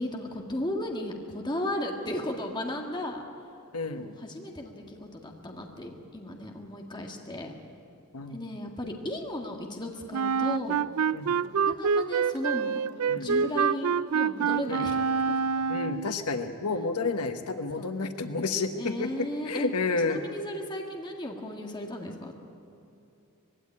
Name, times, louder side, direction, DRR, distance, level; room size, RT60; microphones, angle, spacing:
voice 1, 0.0-3.2 3.9-7.5 8.3-10.8 11.4-12.7 13.1-15.0 15.3-15.4 16.8-16.9 17.8-17.9 18.7-22.3, left 1 dB, 20° left, 2 dB, 1.7 m, -35 dB
voice 2, 3.7-4.1 8.1-8.4 11.1-11.3 13.1-13.3 14.7-14.9 15.7-20.2, left 3 dB, 90° left, 8 dB, 1.2 m, -30 dB
Wind instrument woodwind instrument, 10.1-16.2, right 6 dB, 75° right, 0.4 m, -26 dB
21.0 x 16.0 x 9.7 m, 2.8 s
head